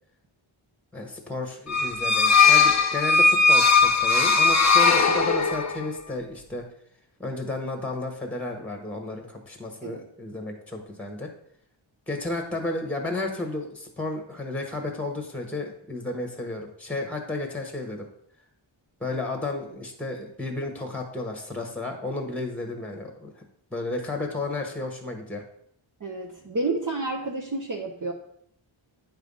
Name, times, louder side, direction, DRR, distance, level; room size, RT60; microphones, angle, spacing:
voice 1, 0.9-6.6 7.2-11.3 12.1-18.1 19.0-23.4 23.7-25.4, left 2 dB, 5° left, 3 dB, 1.1 m, -32 dB
sound 1, 1.7-5.8, left 4 dB, 35° left, 0.7 m, -19 dB
voice 2, 26.0-28.1, right 3 dB, 40° right, 1 dB, 0.7 m, -30 dB
9.2 x 3.4 x 5.4 m, 0.69 s
wide cardioid pair, 110°, 50 cm